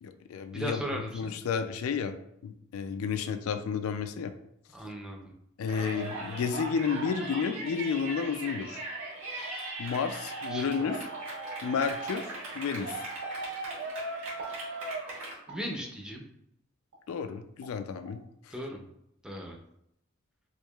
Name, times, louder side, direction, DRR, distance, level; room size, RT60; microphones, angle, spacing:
voice 1, 0.0-2.2 2.4-4.3 5.6-8.8 9.8-11.0 11.6-12.3 12.5-13.0 17.1-18.2, left 6 dB, 90° left, 8 dB, 0.3 m, -31 dB
voice 2, 0.5-1.3 4.7-5.3 10.5-10.9 15.5-16.2 18.5-18.9 19.2-19.6, equal, 5° right, 0 dB, 0.5 m, -37 dB
Yell, 5.7-15.4, right 2 dB, 80° right, 1.4 m, -38 dB
sound 1, 7.0-7.5 8.4-8.5 9.3-9.5 11.1-11.3 13.2-13.4 14.4-14.6 15.5-15.7 16.9-17.0 17.6-17.8 18.0-18.2, right 2 dB, 50° right, 1.0 m, -46 dB
4.5 x 2.7 x 2.3 m, 0.76 s
head